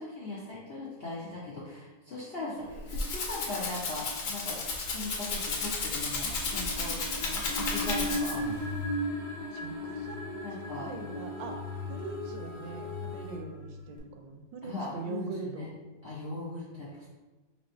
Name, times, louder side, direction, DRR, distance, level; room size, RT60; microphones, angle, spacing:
voice 1, 0.0-4.6 4.9-8.6 10.4-10.9 14.6-15.7 16.0-17.1, left 2 dB, 75° left, -6 dB, 0.5 m, -39 dB
Rattle (instrument), 2.6-8.6, left 3 dB, 60° left, 0.9 m, -33 dB
sound 1, 6.4-13.4, left 2 dB, 5° left, 0.7 m, -44 dB
sound 2, 7.1-14.0, left 1 dB, 40° right, 0.4 m, -37 dB
voice 2, 9.5-10.5 10.8-11.6 11.9-15.7, right 4 dB, 80° right, 4 dB, 1.3 m, -41 dB
3.2 x 2.9 x 4.3 m, 1.2 s
omnidirectional pair, 1.9 m